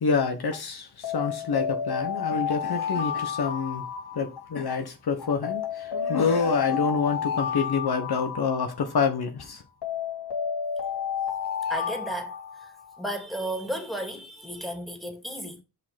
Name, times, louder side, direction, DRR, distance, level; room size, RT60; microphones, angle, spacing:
voice 1, 0.0-3.8 4.1-9.6, left 5 dB, 65° left, 1.4 m, -27 dB
Alarm, 1.0-4.7 5.4-9.1 9.8-13.0, left 7 dB, 85° left, 3.0 m, -31 dB
voice 2, 11.7-12.7 13.0-15.6, equal, ahead, 2.5 m, -34 dB
5.8 x 4.6 x 5.8 m
cardioid pair, 55°, 40 cm